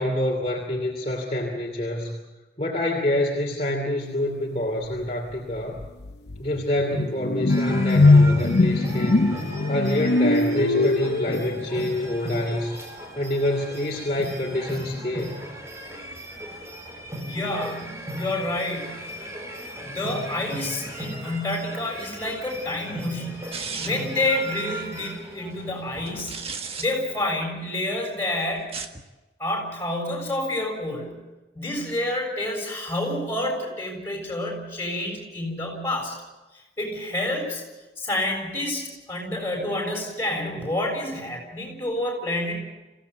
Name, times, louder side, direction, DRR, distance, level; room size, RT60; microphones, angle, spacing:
voice 1, 0.0-2.1 2.6-5.8 6.4-12.8 13.1-15.4, left 1 dB, 35° left, -1 dB, 2.8 m, -27 dB
sound 1, 5.3-5.4 5.8-11.9, left 2 dB, 70° left, 0.8 m, -21 dB
sound 2, 7.5-27.2, equal, 15° right, 3.7 m, -37 dB
voice 2, 17.2-19.0 19.8-23.4 23.8-26.4 26.8-28.7 29.4-31.2 31.5-36.2 36.8-37.6 38.0-42.6, left 1 dB, 15° left, 0 dB, 6.9 m, -28 dB
sound 3, 23.5-24.2 26.1-26.9 28.6-29.0, right 5 dB, 35° right, 1.4 m, -34 dB
26.5 x 16.5 x 8.2 m, 1.1 s
head